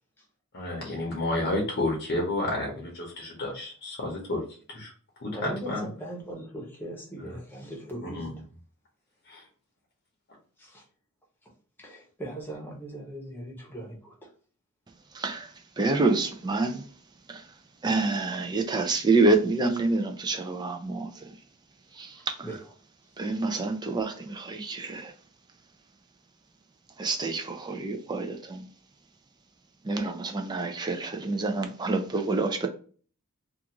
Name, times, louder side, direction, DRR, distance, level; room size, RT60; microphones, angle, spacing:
voice 1, 0.5-4.4 4.7-4.9 5.2-5.9 8.1-8.3 9.3-9.4, left 1 dB, 50° left, -1 dB, 0.8 m, -30 dB
voice 2, 5.3-8.3 10.6-10.8 11.8-14.3 22.2-22.6, right 1 dB, 10° left, -2 dB, 0.8 m, -40 dB
voice 3, 15.1-16.9 17.3-17.5 17.8-21.4 21.9-22.5 23.2-25.1 27.0-28.7 29.8-32.7, right 3 dB, 20° right, 5 dB, 0.4 m, -27 dB
2.4 x 2.4 x 2.8 m, 0.42 s
head